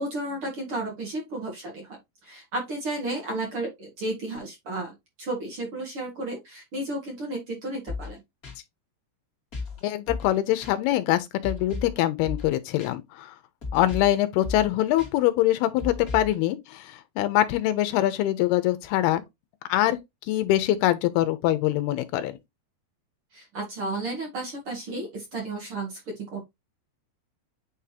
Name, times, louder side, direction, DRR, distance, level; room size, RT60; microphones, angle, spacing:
voice 1, 0.0-8.2 23.3-26.4, right 2 dB, 50° right, 1.7 m, -33 dB
sound 1, 7.9-8.1 8.4-8.6 9.5-9.8 10.1-10.4 10.6-10.7 11.4-12.0 12.2-12.5 12.8-12.9 13.6-14.2 14.4-14.7 15.0-15.1 15.8-16.3, left 4 dB, 30° left, 1.9 m, -34 dB
voice 2, 9.8-13.3 13.7-19.2 19.7-20.0 20.3-22.4, left 14 dB, 75° left, 2.6 m, -24 dB
9.2 x 3.6 x 2.8 m
omnidirectional pair, 5.0 m